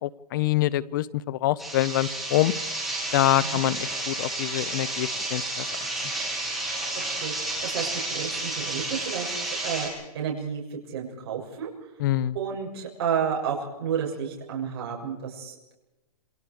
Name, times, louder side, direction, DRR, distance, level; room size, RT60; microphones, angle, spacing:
voice 1, 0.0-2.5 3.1-5.7 12.0-12.3, left 14 dB, 30° left, 19 dB, 0.8 m, -25 dB
sound 1, 1.6-9.9, right 2 dB, ahead, 7.3 m, -31 dB
voice 2, 7.2-11.7 12.3-15.7, right 7 dB, 40° right, -2 dB, 7.3 m, -31 dB
28.5 x 27.0 x 4.9 m, 1.0 s
hypercardioid pair, 160°, 20 cm